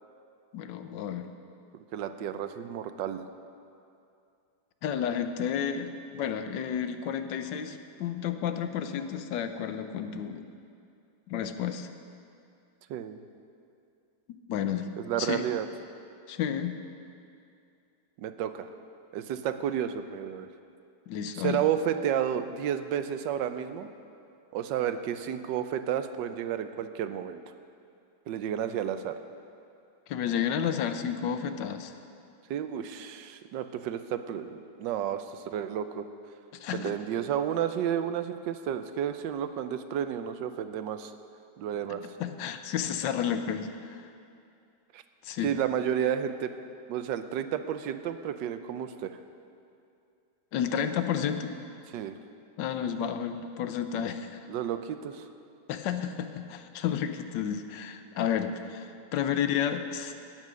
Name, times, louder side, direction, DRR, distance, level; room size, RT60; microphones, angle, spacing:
voice 1, 0.5-1.3 4.8-10.5 11.3-11.9 14.5-14.9 15.2-15.4 16.3-16.8 21.1-21.6 30.1-31.9 36.6-36.9 42.0-44.1 45.2-45.6 50.5-51.5 52.6-54.4 55.7-60.1, left 8 dB, 80° left, 9 dB, 1.4 m, -31 dB
voice 2, 1.9-3.3 12.9-13.2 15.0-15.7 18.2-18.7 19.1-20.5 21.3-23.9 24.5-27.4 28.3-29.2 32.5-36.1 36.7-41.1 41.6-42.0 44.9-45.0 45.4-46.5 46.9-49.2 51.9-52.2 54.5-55.3, right 9 dB, 85° right, 10 dB, 1.3 m, -31 dB
13.0 x 9.2 x 6.2 m, 2.5 s
omnidirectional pair, 1.9 m